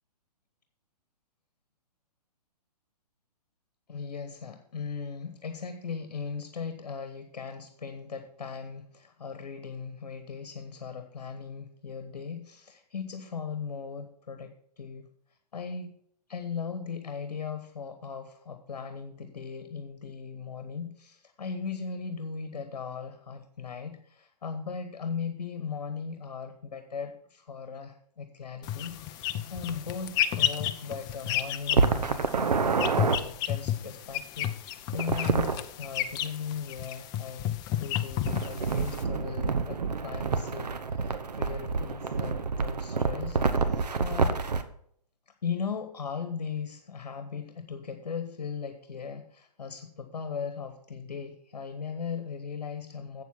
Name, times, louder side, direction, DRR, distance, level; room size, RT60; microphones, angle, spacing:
voice 1, 3.9-15.1 15.5-16.0 16.3-37.5 37.8-44.4 45.4-53.2, left 6 dB, 70° left, 7 dB, 1.2 m, -38 dB
sound 1, 28.6-39.0, left 11 dB, 20° left, 0.5 m, -32 dB
sound 2, 31.7-33.2 34.9-35.6 38.2-44.6, right 4 dB, 75° right, 1.0 m, -28 dB
8.0 x 7.5 x 5.8 m, 0.65 s
figure-of-eight pair, 130°, 21 cm